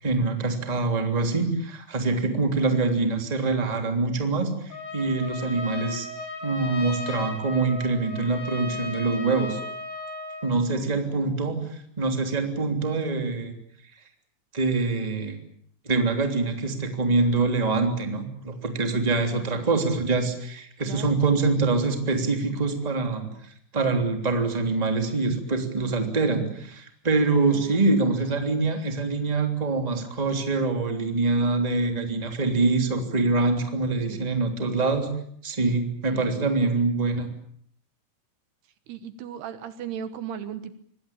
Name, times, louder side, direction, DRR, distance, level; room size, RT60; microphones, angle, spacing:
voice 1, 0.0-6.1 6.4-9.6 10.4-11.6 12.0-13.5 14.5-15.4 15.8-23.3 23.7-35.1 35.4-37.3, right 3 dB, 10° right, 5 dB, 2.5 m, -25 dB
Trumpet, 4.7-10.6, left 2 dB, 60° left, 5.8 m, -36 dB
voice 2, 10.9-11.6 19.3-19.8 20.8-21.2 27.5-27.8 34.1-34.4 36.1-36.4 38.9-40.8, right 9 dB, 75° right, 11 dB, 3.2 m, -38 dB
25.0 x 20.5 x 8.8 m, 0.65 s
omnidirectional pair, 5.0 m